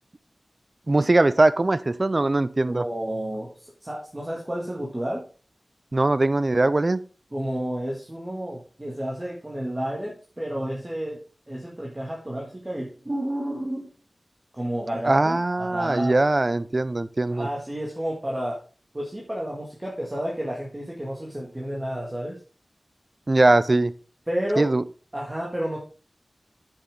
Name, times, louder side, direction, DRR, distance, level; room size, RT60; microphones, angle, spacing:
voice 1, 0.9-2.9 5.9-7.0 15.0-17.5 23.3-23.9 24.6-24.8, right 2 dB, 45° right, 16 dB, 0.5 m, -21 dB
voice 2, 2.6-5.2 7.3-11.2 11.5-13.9 14.5-16.2 17.3-18.6 18.9-22.4 24.3-24.7 25.1-25.8, right 1 dB, 25° right, -3 dB, 2.0 m, -31 dB
8.2 x 7.2 x 3.7 m, 0.39 s
cardioid pair, 45°, 0 cm